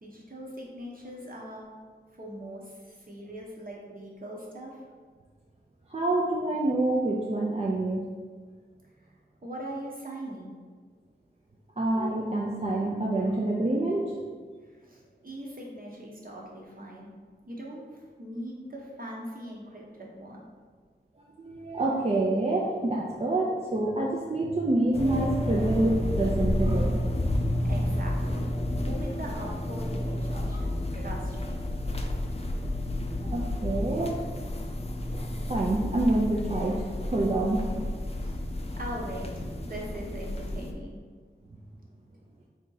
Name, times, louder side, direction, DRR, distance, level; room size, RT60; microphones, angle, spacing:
voice 1, 0.0-1.7 2.2-4.8 9.4-10.5 14.7-17.1 17.5-20.4 27.6-28.5 28.8-31.6 38.2-38.4 38.8-41.0, right 1 dB, 50° right, -3 dB, 0.9 m, -41 dB
voice 2, 5.9-8.0 11.8-14.2 21.4-27.1 31.0-31.1 33.2-34.2 35.5-38.0, right 2 dB, 35° right, -3 dB, 0.5 m, -27 dB
sound 1, 24.9-40.7, left 1 dB, 30° left, 0.4 m, -30 dB
3.5 x 2.8 x 3.9 m, 1.5 s
wide cardioid pair, 45°, 20 cm